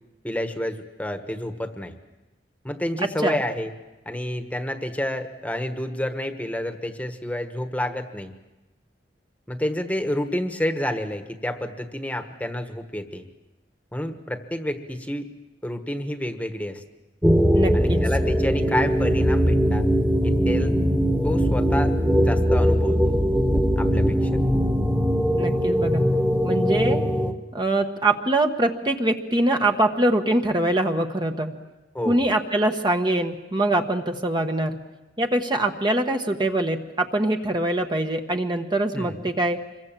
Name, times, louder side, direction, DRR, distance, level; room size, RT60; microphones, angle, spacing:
voice 1, 0.2-1.9 2.6-3.7 4.0-8.3 9.5-13.2 13.9-15.3 15.6-16.8 17.7-19.8 20.2-20.7 21.2-23.2 23.8-24.3 31.9-32.2 38.9-39.2, left 1 dB, 10° left, 7 dB, 1.4 m, -29 dB
sound 1, 17.2-27.3, equal, 10° right, 1.6 m, -21 dB
voice 2, 17.5-18.0 25.4-26.1 26.4-27.0 27.5-31.5 32.0-34.8 35.2-39.6, right 1 dB, 25° right, 4 dB, 1.2 m, -23 dB
26.5 x 22.5 x 7.5 m, 1.1 s
head